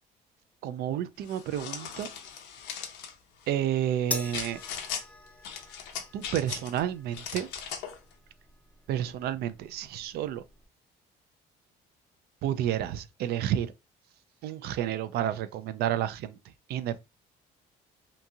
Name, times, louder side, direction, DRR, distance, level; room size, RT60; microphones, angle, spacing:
voice 1, 0.6-2.1 3.5-4.6 6.1-7.5 8.9-10.4 12.4-13.7 14.4-16.4 16.7-17.0, right 11 dB, 70° right, 0.4 m, -30 dB
sound 1, 1.3-3.1 4.3-5.0 5.4-6.8 7.1-8.0, left 8 dB, 85° left, 0.6 m, -38 dB
sound 2, 4.1-10.7, left 2 dB, 10° left, 0.4 m, -44 dB
2.8 x 2.6 x 2.3 m
cardioid pair, 110°, 17 cm